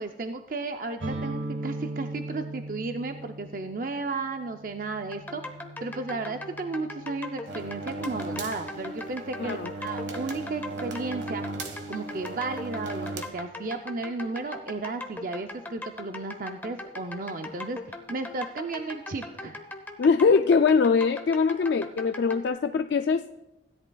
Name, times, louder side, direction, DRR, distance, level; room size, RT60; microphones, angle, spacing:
voice 1, 0.0-5.4 5.8-11.4 11.9-17.8 18.1-19.6, right 3 dB, 45° right, 6 dB, 0.5 m, -34 dB
sound 1, 1.0-8.6, right 2 dB, 85° right, 1.3 m, -39 dB
sound 2, 5.1-22.5, left 2 dB, 10° left, 0.8 m, -40 dB
Jacob's ladder, 7.5-13.2, right 2 dB, 65° right, 1.3 m, -36 dB
voice 2, 9.4-9.7 20.0-23.3, left 5 dB, 60° left, 8 dB, 0.3 m, -22 dB
16.0 x 11.0 x 2.3 m, 0.93 s
head